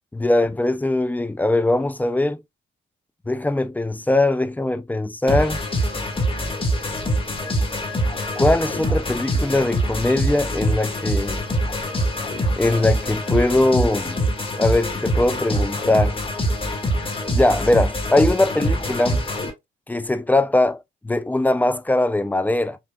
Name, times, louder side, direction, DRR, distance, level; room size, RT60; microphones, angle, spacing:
voice 1, 0.1-2.4 3.3-5.6 8.4-11.4 12.6-14.2 14.6-16.2 17.3-19.3 19.9-22.8, left 2 dB, 10° left, 0.4 m, -21 dB
sound 1, 5.3-19.5, equal, 25° left, 1.6 m, -24 dB
5.5 x 2.8 x 2.3 m
cardioid pair, 90°, 20 cm